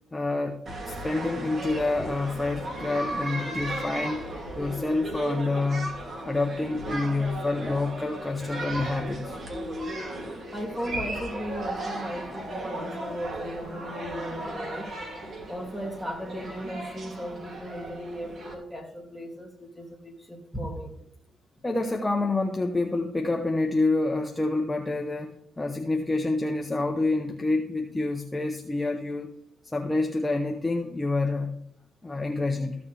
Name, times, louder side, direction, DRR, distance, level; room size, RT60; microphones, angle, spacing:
voice 1, 0.1-0.6 0.9-4.3 4.6-5.9 6.2-9.4 21.6-29.3 29.7-31.5 32.0-32.8, left 2 dB, 15° left, 3 dB, 0.8 m, -27 dB
sound 1, 0.7-18.5, right 1 dB, 45° right, 2.5 m, -36 dB
voice 2, 10.5-14.9 15.5-20.9, equal, 5° right, 1 dB, 2.6 m, -36 dB
14.5 x 7.0 x 3.3 m, 0.72 s
cardioid pair, 90°, 0 cm